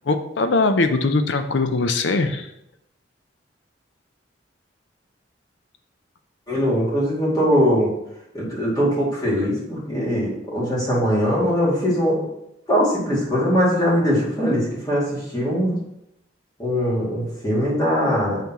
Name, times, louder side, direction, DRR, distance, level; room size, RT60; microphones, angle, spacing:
voice 1, 0.0-2.5, left 3 dB, 75° left, 8 dB, 0.6 m, -21 dB
voice 2, 6.5-7.9 8.3-12.3 12.7-15.8 16.6-18.4, equal, 20° left, -6 dB, 2.4 m, -21 dB
7.0 x 5.8 x 3.0 m, 0.81 s
head